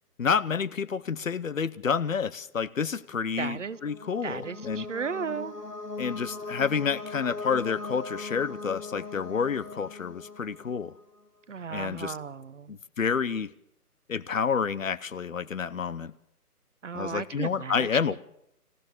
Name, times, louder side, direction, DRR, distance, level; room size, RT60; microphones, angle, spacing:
voice 1, 0.2-4.9 6.0-10.9 11.7-12.1 12.7-13.5 14.1-16.1 16.9-18.2, left 6 dB, 55° left, 0.9 m, -29 dB
voice 2, 3.4-3.8 4.2-5.6 11.5-12.8 16.8-18.2, right 6 dB, 50° right, 1.1 m, -35 dB
sound 1, 3.5-11.2, left 3 dB, 80° left, 2.8 m, -40 dB
26.0 x 15.5 x 6.6 m
figure-of-eight pair, 145°, 47 cm